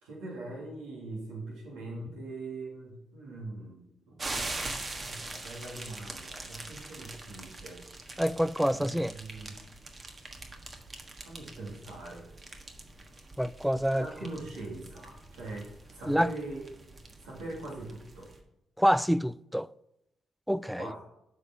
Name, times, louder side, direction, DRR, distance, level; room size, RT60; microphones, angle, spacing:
voice 1, 0.0-4.2 4.9-7.8 8.1-8.2 8.8-9.6 11.2-12.2 13.9-16.6 17.2-18.3 20.7-21.0, right 2 dB, 85° right, 2.5 m, -42 dB
sound 1, 4.2-18.4, right 2 dB, 40° right, 1.4 m, -43 dB
voice 2, 8.2-9.1 13.4-14.1 16.1-16.3 18.8-19.7 20.5-20.9, equal, ahead, 0.3 m, -26 dB
7.6 x 5.3 x 5.9 m
hypercardioid pair, 45°, 0 cm